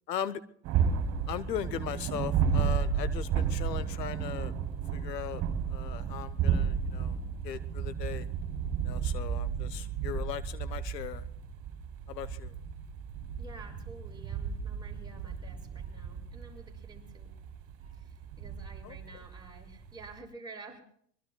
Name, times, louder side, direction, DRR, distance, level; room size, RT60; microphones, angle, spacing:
voice 1, 0.1-0.4 1.3-4.5 4.9-5.4 5.7-7.2 7.4-8.3 8.8-11.2 12.1-12.5 18.8-19.0, left 10 dB, 75° left, 15 dB, 1.0 m, -38 dB
sound 1, 0.6-20.2, right 7 dB, 40° right, 3.4 m, -33 dB
voice 2, 13.4-17.3 17.8-20.8, right 3 dB, 10° right, -1 dB, 6.4 m, -51 dB
24.5 x 23.5 x 2.3 m, 0.62 s
hypercardioid pair, 90°, 49 cm